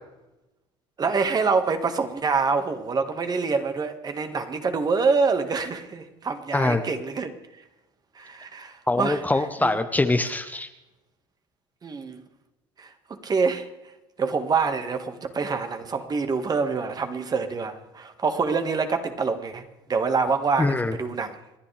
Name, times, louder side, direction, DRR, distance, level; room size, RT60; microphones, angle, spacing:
voice 1, 1.0-7.3 8.2-9.2 9.6-9.7 11.8-12.2 12.8-13.7 14.2-21.4, right 4 dB, 30° right, 8 dB, 1.7 m, -26 dB
voice 2, 8.9-10.7 20.6-20.9, left 2 dB, 10° left, 7 dB, 1.1 m, -23 dB
28.5 x 10.0 x 3.4 m, 0.99 s
supercardioid pair, 85°, 13 cm